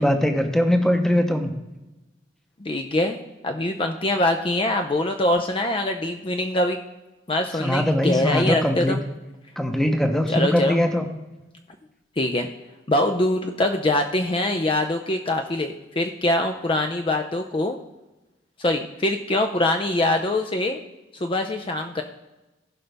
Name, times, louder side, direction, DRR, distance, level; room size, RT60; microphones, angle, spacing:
voice 1, 0.0-1.5 7.6-9.0 9.6-11.1, equal, ahead, 5 dB, 0.8 m, -21 dB
voice 2, 2.6-3.2 3.4-6.8 7.3-9.0 10.3-10.8 12.2-12.5 12.9-17.8 18.6-20.8 21.1-22.0, left 1 dB, 30° left, 5 dB, 0.5 m, -23 dB
16.0 x 5.4 x 3.4 m, 1.0 s
head